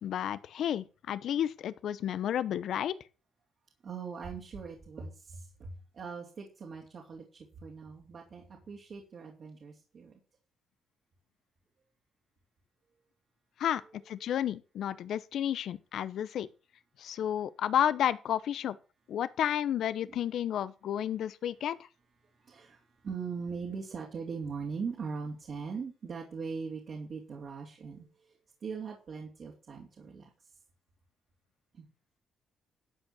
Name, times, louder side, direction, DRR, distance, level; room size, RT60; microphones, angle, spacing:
voice 1, 0.0-3.0 13.6-13.8 14.1-16.5 17.0-18.8 19.1-21.8, left 10 dB, 70° left, 0.8 m, -31 dB
voice 2, 3.8-10.2 15.1-15.2 17.3-17.5 20.0-20.2 22.4-28.3 28.6-30.3 31.7-31.9, right 5 dB, 55° right, 3.2 m, -41 dB
12.5 x 5.4 x 7.2 m
cardioid pair, 90°, 0 cm